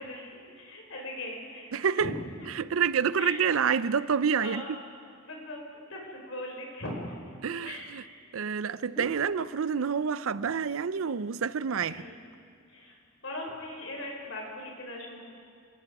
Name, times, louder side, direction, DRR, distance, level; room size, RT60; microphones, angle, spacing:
voice 1, 0.0-2.1 3.2-3.4 4.4-4.7 5.2-7.2 7.6-8.1 11.8-12.2 12.7-13.0 13.2-15.3, left 1 dB, 75° left, 4.7 m, -40 dB
voice 2, 1.7-2.1 2.5-4.6 7.4-8.0 8.3-12.0, right 6 dB, 80° right, 0.5 m, -28 dB
sound 1, 7.3-10.0 10.3-10.7 11.1-11.2 11.5-12.2 12.9-13.6 14.3-14.4, equal, 15° left, 7.6 m, -51 dB
27.5 x 19.5 x 4.8 m
head